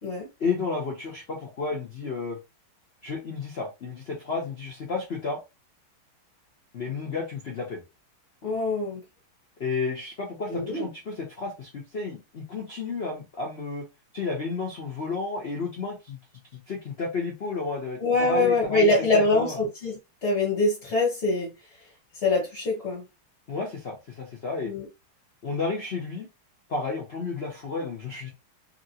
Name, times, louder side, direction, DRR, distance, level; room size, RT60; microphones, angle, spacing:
voice 1, 0.4-2.4 3.0-5.4 6.7-7.8 9.6-13.9 14.1-16.2 16.7-19.6 23.5-24.7 25.4-26.3 26.7-28.3, left 4 dB, 85° left, 0.5 m, -32 dB
voice 2, 8.4-9.0 10.5-10.8 18.0-21.5 22.2-23.0 24.6-24.8, left 2 dB, 45° left, 0.9 m, -24 dB
2.9 x 2.9 x 2.7 m
omnidirectional pair, 2.3 m